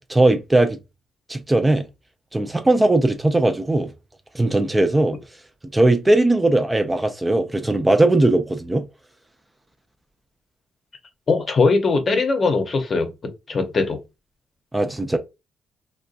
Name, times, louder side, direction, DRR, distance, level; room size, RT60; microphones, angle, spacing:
voice 1, 0.1-0.8 1.3-1.8 2.3-3.9 4.3-5.2 5.7-8.9 14.7-15.2, right 2 dB, 15° right, 0.3 m, -18 dB
voice 2, 11.3-14.0, left 3 dB, 40° left, 0.7 m, -21 dB
2.6 x 2.2 x 2.3 m
cardioid pair, 90°, 0 cm